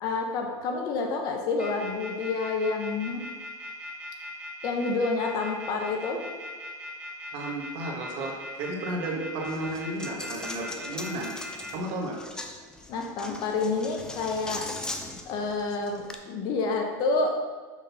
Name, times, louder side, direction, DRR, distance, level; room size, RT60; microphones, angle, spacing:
voice 1, 0.0-3.2 4.6-6.2 12.9-14.6 15.3-17.3, left 3 dB, 40° left, 2 dB, 0.9 m, -28 dB
sound 1, 1.6-11.7, left 1 dB, 10° right, 1.2 m, -40 dB
voice 2, 7.3-11.3 11.7-12.2, right 1 dB, 50° right, 0 dB, 1.4 m, -33 dB
Coin (dropping), 9.5-16.2, left 2 dB, 5° left, 0.4 m, -40 dB
6.1 x 3.8 x 5.7 m, 1.4 s
supercardioid pair, 155°, 10 cm